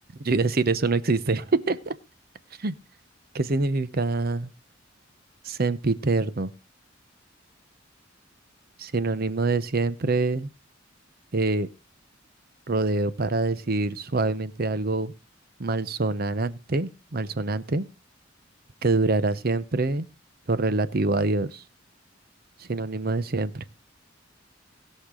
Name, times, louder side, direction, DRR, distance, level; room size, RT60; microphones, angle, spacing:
voice 1, 0.2-1.9 2.6-2.7 3.3-4.5 5.4-6.5 8.8-10.5 11.3-11.7 12.7-15.1 15.6-17.9 18.8-20.1 20.5-21.6 22.7-23.6, right 3 dB, 50° right, 0.8 m, -25 dB
19.5 x 6.6 x 3.7 m
head